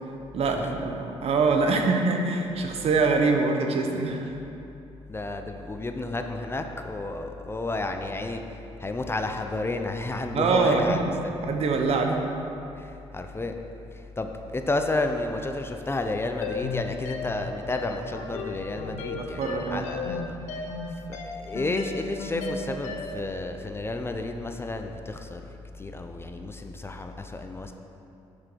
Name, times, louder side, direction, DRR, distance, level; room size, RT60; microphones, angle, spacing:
voice 1, 0.3-4.3 10.3-11.2 11.4-12.3 19.2-19.8, right 4 dB, 60° right, 3 dB, 0.9 m, -24 dB
voice 2, 5.1-11.4 12.8-13.5 13.9-27.7, left 2 dB, 20° left, 5 dB, 0.6 m, -32 dB
sound 1, 16.4-23.3, left 3 dB, 85° left, 0.7 m, -35 dB
7.4 x 6.3 x 4.6 m, 2.8 s
cardioid pair, 75°, 12 cm